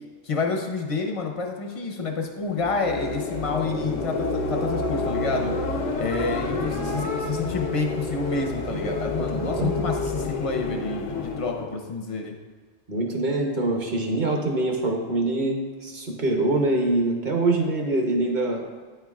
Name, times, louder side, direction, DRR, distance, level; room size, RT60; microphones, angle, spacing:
voice 1, 0.2-5.6 6.0-12.4, left 4 dB, 40° left, 2 dB, 0.5 m, -29 dB
sound 1, 2.4-11.7, left 3 dB, 90° left, 1.0 m, -29 dB
voice 2, 9.2-9.7 12.9-18.6, right 2 dB, 45° right, 1 dB, 0.9 m, -24 dB
9.3 x 4.5 x 2.4 m, 1.5 s
omnidirectional pair, 1.2 m